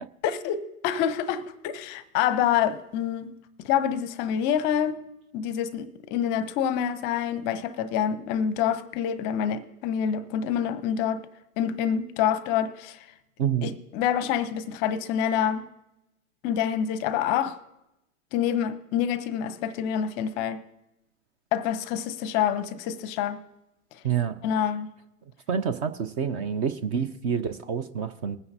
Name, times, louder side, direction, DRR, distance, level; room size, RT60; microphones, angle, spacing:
voice 1, 0.2-3.3 3.6-5.0 5.3-11.3 11.6-13.1 13.6-15.7 16.4-17.6 18.3-20.6 21.5-23.4 24.4-24.9, left 9 dB, 25° left, 0.7 m, -27 dB
voice 2, 13.4-13.7 24.0-24.3 25.5-28.4, right 7 dB, 25° right, 0.6 m, -27 dB
21.0 x 9.6 x 2.7 m
hypercardioid pair, 120°, 40 cm